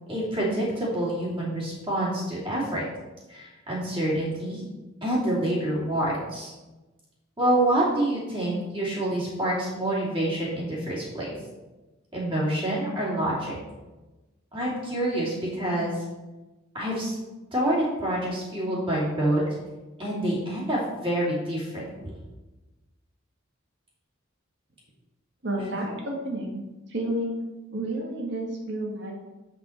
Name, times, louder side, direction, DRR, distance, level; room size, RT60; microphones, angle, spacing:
voice 1, 0.1-2.8 3.3-4.6 5.0-6.5 7.4-11.3 12.1-13.6 14.5-16.0 16.7-17.2 17.5-19.4 20.0-22.1 25.7-25.8, right 1 dB, 25° right, -7 dB, 2.7 m, -27 dB
voice 2, 25.4-26.6 26.9-27.5 27.7-29.1, right 1 dB, 55° right, 0 dB, 1.8 m, -30 dB
7.5 x 6.1 x 4.5 m, 1.1 s
head